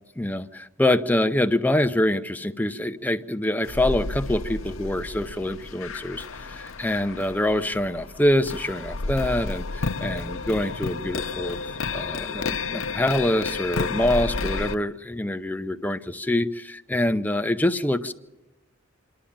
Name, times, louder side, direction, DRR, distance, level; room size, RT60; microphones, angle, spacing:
voice 1, 0.2-11.6 11.9-18.1, left 1 dB, 10° left, 8 dB, 0.6 m, -25 dB
sound 1, 3.6-14.8, left 4 dB, 85° left, 0.7 m, -31 dB
26.0 x 11.5 x 8.7 m, 1.1 s
head